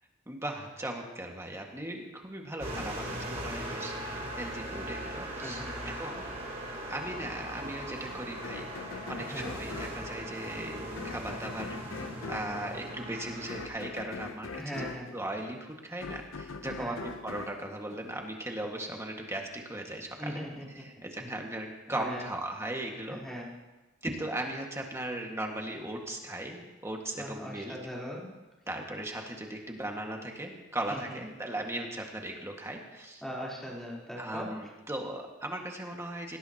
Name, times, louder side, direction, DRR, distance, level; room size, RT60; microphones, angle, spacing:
voice 1, 0.3-6.3 6.9-8.7 9.1-14.9 15.1-20.4 20.8-23.2 24.0-27.8 28.7-33.2 34.2-36.4, right 1 dB, 15° right, 1 dB, 1.9 m, -38 dB
sound 1, 2.6-13.7, right 1 dB, 35° right, 4.8 m, -39 dB
voice 2, 5.4-5.9 9.2-9.6 14.5-15.1 16.7-17.0 20.2-20.7 21.2-21.3 21.9-22.3 23.1-23.5 27.2-28.3 30.9-31.2 33.2-34.5, equal, ahead, -5 dB, 3.9 m, -40 dB
sound 2, 8.4-18.6, left 4 dB, 85° left, 0.8 m, -43 dB
19.0 x 17.5 x 3.0 m, 1.1 s
head